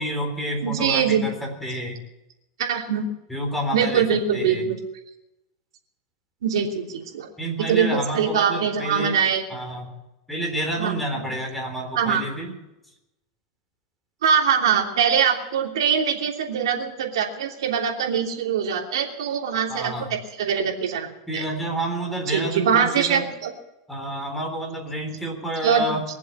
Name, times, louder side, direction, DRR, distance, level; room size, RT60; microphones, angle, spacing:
voice 1, 0.0-2.0 3.3-4.1 4.3-4.6 7.4-9.2 9.5-9.9 10.3-12.5 19.7-20.1 21.3-23.2 23.9-26.0, right 1 dB, 5° left, 2 dB, 3.9 m, -29 dB
voice 2, 0.6-1.2 2.6-3.0 3.7-4.8 6.4-7.3 7.7-9.4 10.8-11.3 11.9-12.2 14.2-21.4 22.3-23.5 25.6-25.9, right 7 dB, 85° right, 1 dB, 3.1 m, -23 dB
22.0 x 7.7 x 8.3 m, 0.94 s
supercardioid pair, 140°, 2 cm